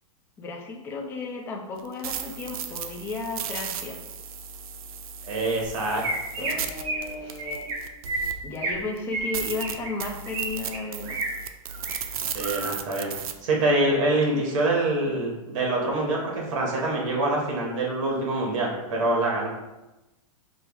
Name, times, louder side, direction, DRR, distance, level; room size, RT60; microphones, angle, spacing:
voice 1, 0.4-4.0 6.4-7.7 8.4-11.2 15.0-15.1, left 3 dB, 10° left, 0 dB, 0.4 m, -34 dB
sound 1, 1.8-8.6 9.0-9.1 9.3-13.3, right 7 dB, 85° right, 0.5 m, -35 dB
voice 2, 5.3-6.0 6.4-6.5 12.3-13.1 13.4-19.5, right 2 dB, 60° right, -2 dB, 1.5 m, -25 dB
Chirp tweet, 5.6-5.7 6.0-6.5 6.8-7.1 7.4-7.7 8.0-8.8 9.1-10.4 10.7-11.3 11.7-12.0 12.4-12.7, right 3 dB, 30° right, 0.9 m, -30 dB
4.8 x 2.0 x 4.6 m, 1.0 s
supercardioid pair, 160°, 18 cm